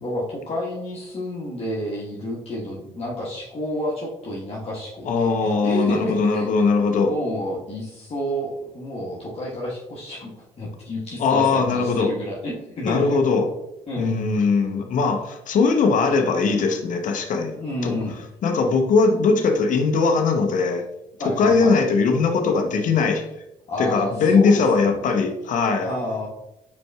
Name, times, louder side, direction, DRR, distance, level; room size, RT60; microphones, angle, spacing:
voice 1, 0.0-6.5 6.7-10.3 10.6-13.2 13.9-14.1 17.6-18.2 21.2-21.7 23.7-25.0 25.8-26.3, equal, 40° left, -6 dB, 1.4 m, -30 dB
voice 2, 5.0-7.1 11.2-12.1 12.8-13.5 14.0-17.5 17.8-17.9 18.4-20.8 21.2-23.3 23.8-25.9, left 4 dB, 60° left, 5 dB, 0.9 m, -20 dB
5.1 x 4.5 x 2.3 m, 0.88 s
hypercardioid pair, 55°, 15 cm